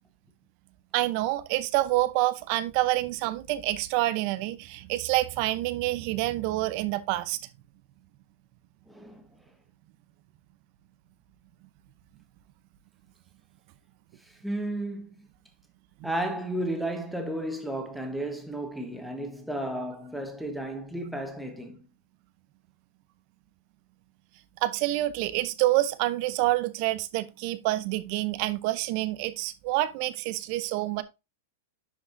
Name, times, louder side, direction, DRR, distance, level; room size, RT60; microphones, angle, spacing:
voice 1, 0.9-7.4 16.0-16.1 24.6-31.0, right 17 dB, 45° right, 0.7 m, -27 dB
voice 2, 8.9-9.2 14.4-15.3 16.0-21.9, right 1 dB, ahead, 1.4 m, -33 dB
10.5 x 4.7 x 2.6 m
hypercardioid pair, 140°, 0 cm